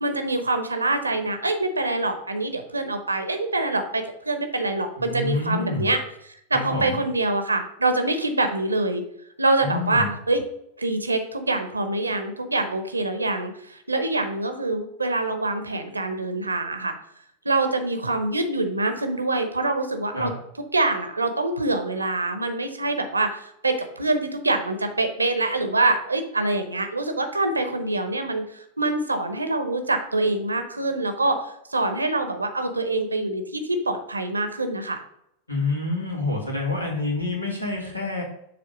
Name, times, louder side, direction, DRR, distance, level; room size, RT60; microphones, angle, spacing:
voice 1, 0.0-6.0 6.5-9.0 9.4-10.4 10.8-16.9 17.4-20.3 20.7-35.0, right 2 dB, 80° right, 7 dB, 0.8 m, -25 dB
voice 2, 5.0-5.9 6.5-7.0 9.6-10.1 20.1-20.3 35.5-38.2, left 3 dB, 85° left, -2 dB, 1.9 m, -27 dB
6.9 x 3.2 x 5.0 m, 0.75 s
figure-of-eight pair, 90°, 0 cm